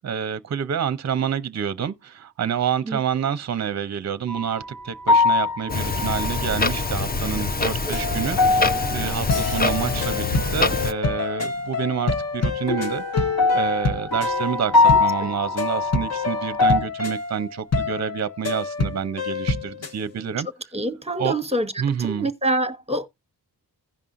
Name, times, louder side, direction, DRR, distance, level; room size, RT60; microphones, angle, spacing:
voice 1, 0.0-13.3 13.5-20.5 21.2-21.3 21.8-22.3, right 8 dB, 40° right, 0.6 m, -28 dB
sound 1, 4.3-4.6 5.1-6.9 7.4-10.3 12.7-16.8, left 3 dB, 65° left, 2.1 m, -23 dB
Clock, 5.7-10.9, left 3 dB, 25° left, 0.6 m, -25 dB
sound 2, 9.3-20.0, left 4 dB, 40° left, 1.0 m, -27 dB
voice 2, 20.7-23.1, right 1 dB, 15° right, 1.0 m, -26 dB
16.5 x 5.5 x 2.5 m
wide cardioid pair, 85°, 40 cm